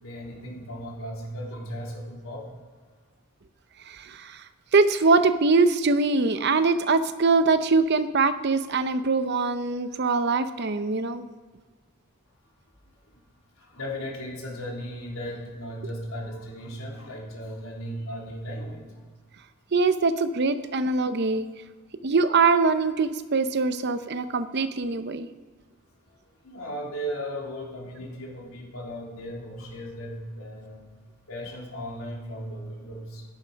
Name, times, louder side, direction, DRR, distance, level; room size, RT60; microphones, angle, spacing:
voice 1, 0.0-2.5 13.0-13.1 13.6-19.0 21.2-21.3 26.4-30.9 31.3-33.2, equal, 85° left, -2 dB, 3.2 m, -36 dB
voice 2, 3.9-4.4 4.7-11.2 19.7-21.5 22.0-25.3, right 4 dB, 50° right, 11 dB, 0.7 m, -23 dB
12.5 x 10.5 x 5.2 m, 1.5 s
head